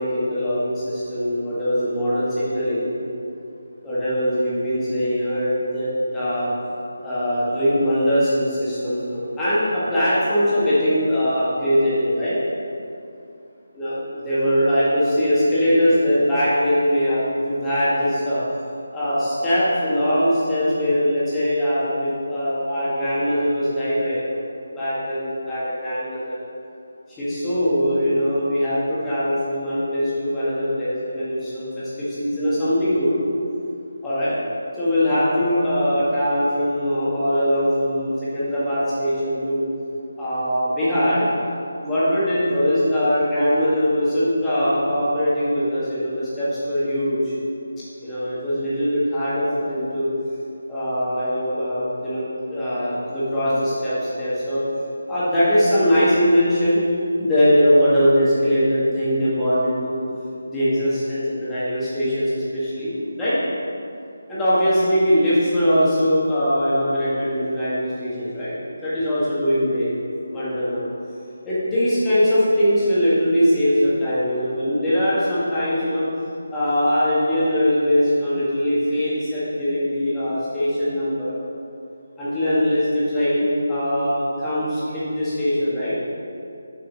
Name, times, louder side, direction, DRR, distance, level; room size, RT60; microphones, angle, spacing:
voice 1, 0.0-2.9 3.8-6.5 7.0-12.4 13.8-18.4 18.9-24.4 24.7-26.4 27.2-33.2 34.0-34.4 34.7-39.6 40.2-41.3 41.8-47.3 48.0-50.1 50.7-52.2 52.5-54.6 55.1-56.8 57.2-60.0 60.5-63.4 64.3-68.5 68.8-69.9 70.3-70.9 71.5-76.1 76.5-81.3 82.2-86.0, equal, 10° left, -12 dB, 1.8 m, -21 dB
7.1 x 5.4 x 5.4 m, 2.6 s
figure-of-eight pair, 175°, 0 cm